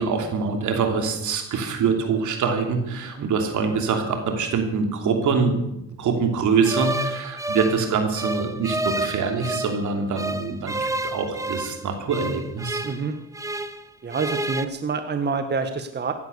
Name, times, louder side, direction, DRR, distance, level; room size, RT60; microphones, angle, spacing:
voice 1, 0.0-5.6 5.9-12.8, right 5 dB, 75° right, 5 dB, 3.1 m, -24 dB
sound 1, 6.6-9.8 10.2-13.8 14.1-14.6, right 1 dB, 10° right, 1.0 m, -30 dB
voice 2, 12.8-13.2 14.0-16.1, right 4 dB, 35° right, 8 dB, 1.4 m, -27 dB
16.0 x 11.5 x 6.9 m, 0.86 s
cardioid pair, 90°, 30 cm